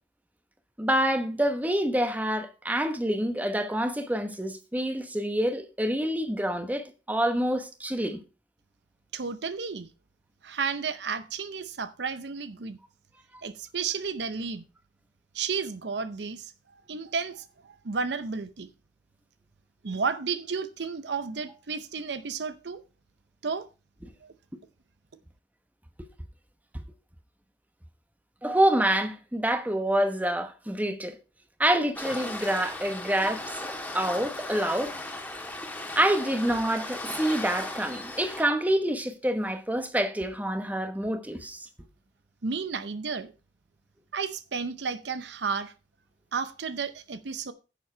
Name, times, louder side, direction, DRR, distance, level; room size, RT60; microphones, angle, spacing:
voice 1, 0.8-8.2 28.4-31.2 31.6-33.6 33.9-34.9 35.9-41.7, right 1 dB, 10° right, 1.1 m, -27 dB
voice 2, 9.1-9.9 10.4-12.8 13.4-14.6 15.3-16.5 16.9-18.7 19.8-22.8 23.4-23.7 24.2-24.3 42.4-43.3 44.1-45.7 46.3-47.5, right 5 dB, 70° right, 0.7 m, -32 dB
Waves surf, 32.0-38.4, left 1 dB, 10° left, 1.7 m, -37 dB
10.0 x 7.2 x 4.4 m
head